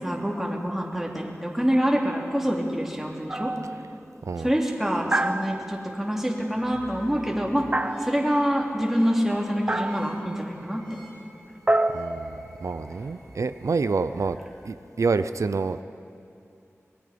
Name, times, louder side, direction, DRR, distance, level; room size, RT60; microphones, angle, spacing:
voice 1, 0.0-3.5 4.4-7.7 8.0-10.8, equal, 5° right, -2 dB, 3.2 m, -26 dB
sound 1, 3.3-3.8 5.1-6.0 7.7-8.5 9.7-10.2 11.7-12.9, right 1 dB, 30° right, 0.8 m, -27 dB
sound 2, 6.5-14.7, equal, 20° left, 6.4 m, -48 dB
voice 2, 11.9-14.4 14.6-15.8, right 4 dB, 90° right, 11 dB, 0.5 m, -27 dB
25.0 x 21.5 x 5.2 m, 2.6 s
wide cardioid pair, 75°, 5 cm